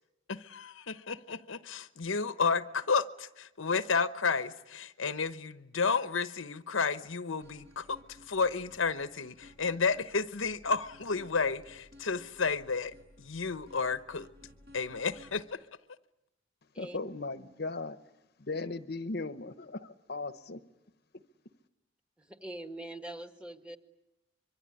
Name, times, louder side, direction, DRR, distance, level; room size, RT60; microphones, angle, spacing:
voice 1, 0.3-14.3 14.7-15.6, left 5 dB, 80° left, 1.0 m, -32 dB
sound 1, 7.4-15.4, left 1 dB, 55° right, 6.4 m, -57 dB
voice 2, 16.8-18.0 18.4-20.6, left 3 dB, 55° left, 1.0 m, -37 dB
voice 3, 22.2-23.8, right 1 dB, 5° right, 1.7 m, -43 dB
25.0 x 23.5 x 9.8 m
head